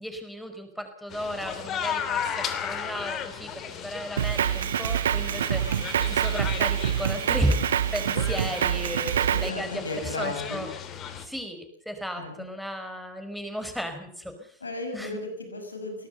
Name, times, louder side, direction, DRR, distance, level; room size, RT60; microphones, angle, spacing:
voice 1, 0.0-10.7 11.2-14.6 14.9-15.2, equal, ahead, 7 dB, 5.1 m, -34 dB
sound 1, 1.1-11.2, left 8 dB, 30° left, 3.1 m, -35 dB
Drum kit, 4.2-9.5, right 9 dB, 65° right, 0.8 m, -26 dB
voice 2, 9.1-10.6 12.2-12.5 14.6-16.1, left 2 dB, 75° left, 6 dB, 6.0 m, -35 dB
23.0 x 19.5 x 6.9 m, 0.62 s
figure-of-eight pair, 90°, 0 cm